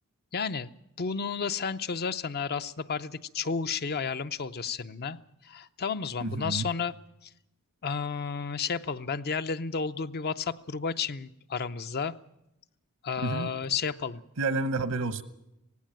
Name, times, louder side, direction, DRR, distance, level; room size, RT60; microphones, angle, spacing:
voice 1, 0.3-0.7 1.0-5.2 5.4-6.9 7.8-12.1 13.0-14.2, left 5 dB, 45° left, 12 dB, 0.6 m, -32 dB
voice 2, 6.2-6.7 13.2-13.5 14.4-15.2, right 3 dB, 80° right, 13 dB, 1.0 m, -30 dB
18.0 x 17.0 x 8.9 m, 0.85 s
head